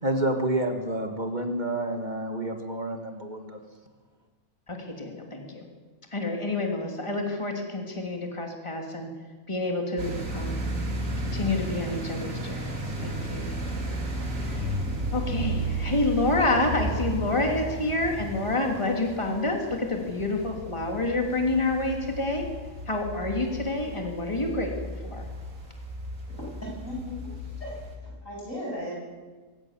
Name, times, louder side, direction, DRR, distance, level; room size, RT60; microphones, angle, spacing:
voice 1, 0.0-3.6, right 1 dB, 35° right, 5 dB, 2.0 m, -29 dB
voice 2, 4.7-5.7 6.1-9.1 9.5-10.7 11.2-13.6 14.5-14.8 15.1-22.5 22.8-25.3, left 2 dB, 20° left, 2 dB, 3.0 m, -28 dB
sound 1, 10.0-28.0, right 1 dB, 90° right, 3.3 m, -34 dB
voice 3, 26.4-28.9, left 1 dB, 90° left, -2 dB, 8.1 m, -37 dB
23.5 x 17.5 x 7.4 m, 1.4 s
omnidirectional pair, 1.3 m